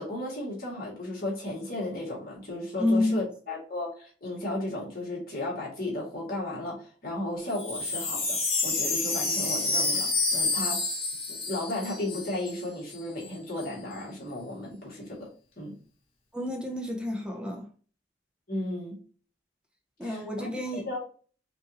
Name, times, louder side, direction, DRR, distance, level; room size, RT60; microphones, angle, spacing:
voice 1, 0.0-10.8 11.3-15.3 15.6-15.7 18.5-18.9 20.0-21.0, left 1 dB, 55° left, 2.0 m, -34 dB
voice 2, 2.8-3.3 16.3-17.7 20.0-21.0, left 2 dB, 5° right, 0.6 m, -29 dB
Wind chime, 7.4-12.6 12.9-13.0 13.2-13.7, left 3 dB, 35° left, 1.2 m, -29 dB
5.3 x 2.6 x 2.9 m
head